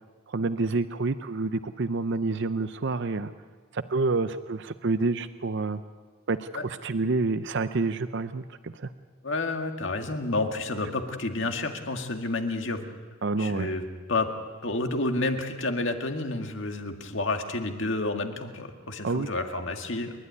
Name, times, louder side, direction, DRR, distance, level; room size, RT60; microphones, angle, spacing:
voice 1, 0.3-3.3 3.7-5.8 6.3-8.9 13.2-13.7 19.0-19.3, right 3 dB, 55° right, 11 dB, 0.6 m, -28 dB
voice 2, 9.2-12.9 13.4-13.8 14.1-14.3 14.6-20.1, left 2 dB, 60° left, 5 dB, 2.0 m, -30 dB
29.0 x 12.5 x 9.6 m, 1.5 s
head